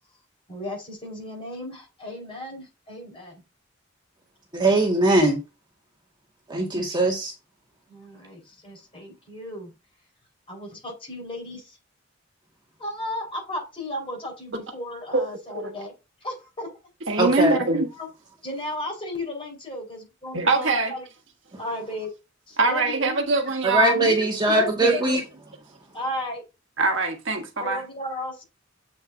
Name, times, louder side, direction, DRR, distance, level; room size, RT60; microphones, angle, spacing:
voice 1, 0.5-3.4 6.7-6.8 7.9-9.7 10.5-11.8 12.8-15.9 16.2-16.7 17.4-17.6 17.9-18.1 18.4-21.0 21.6-22.1 22.5-23.0 23.9-25.2 25.9-26.4 27.6-28.4, left 1 dB, 30° left, 4.7 m, -35 dB
voice 2, 4.5-5.4 6.5-7.3 17.2-17.6 23.6-25.2, right 2 dB, 25° right, 1.9 m, -21 dB
voice 3, 17.1-17.9 20.3-20.9 22.6-24.1 24.5-25.0 26.8-27.8, right 2 dB, 65° right, 1.4 m, -23 dB
8.0 x 6.3 x 2.7 m
head